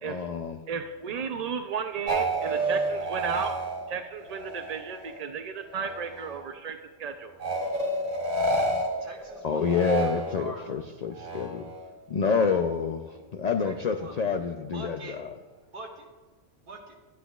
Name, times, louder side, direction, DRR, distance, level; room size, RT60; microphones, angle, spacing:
voice 1, 0.0-0.6 9.4-11.7 12.1-15.0, left 5 dB, 60° left, 6 dB, 0.4 m, -28 dB
voice 2, 0.7-3.6 3.9-7.3, right 6 dB, 65° right, 6 dB, 0.3 m, -34 dB
sound 1, 2.1-5.3 5.6-6.4 7.4-10.6 11.1-11.9, right 1 dB, 85° right, 1.6 m, -30 dB
voice 3, 9.0-11.0 13.6-14.2 14.7-15.2 15.7-16.1 16.6-17.0, right 2 dB, 45° right, -1 dB, 1.7 m, -44 dB
12.5 x 9.9 x 2.3 m, 1.2 s
omnidirectional pair, 1.3 m